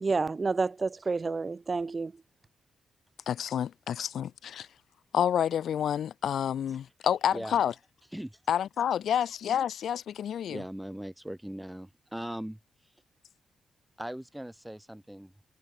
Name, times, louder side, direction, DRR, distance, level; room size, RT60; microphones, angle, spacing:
voice 1, 0.0-2.1, right 4 dB, 25° right, 0.3 m, -29 dB
voice 2, 3.3-4.7 5.1-7.7 8.5-10.6, left 9 dB, 70° left, 1.5 m, -29 dB
voice 3, 10.5-12.6 14.0-15.3, right 1 dB, 5° right, 1.2 m, -39 dB
wide cardioid pair, 145°, 0 cm